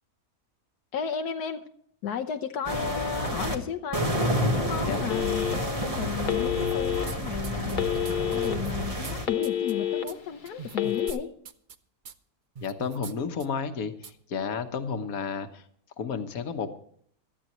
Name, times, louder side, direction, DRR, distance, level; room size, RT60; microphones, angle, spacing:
voice 1, 0.9-1.6 2.0-4.1 4.5-7.9 8.2-11.3, left 7 dB, 85° left, 6 dB, 1.4 m, -34 dB
sound 1, 2.6-3.5 3.9-9.3, equal, 25° right, 1.5 m, -29 dB
voice 2, 4.8-5.2 12.6-15.7 16.0-16.8, left 5 dB, 65° left, 7 dB, 1.5 m, -32 dB
Telephone, 5.1-5.8 6.3-7.0 7.7-8.5 9.0-10.0 10.7-11.1, left 11 dB, 35° left, 1.0 m, -28 dB
sound 2, 6.6-7.2 7.4-9.1 9.4-9.7 10.1-10.2 10.5-11.2 11.5-11.8 12.1-12.2 12.6-13.1 13.4-13.5 14.0-14.1, right 6 dB, 45° right, 0.6 m, -42 dB
17.5 x 13.5 x 3.0 m, 0.62 s
omnidirectional pair, 1.6 m